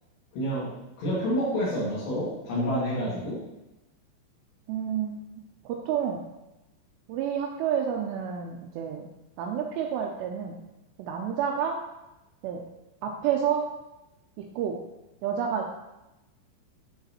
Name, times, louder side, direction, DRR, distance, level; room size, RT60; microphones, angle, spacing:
voice 1, 0.3-0.7 1.0-3.4, equal, 75° left, -9 dB, 4.4 m, -28 dB
voice 2, 4.7-6.2 7.1-9.1 9.4-10.6 11.0-11.8 12.4-12.7 13.0-13.7 14.6-14.8 15.2-15.8, right 8 dB, 85° right, 1 dB, 2.5 m, -29 dB
11.0 x 3.9 x 2.9 m, 0.97 s
omnidirectional pair, 5.4 m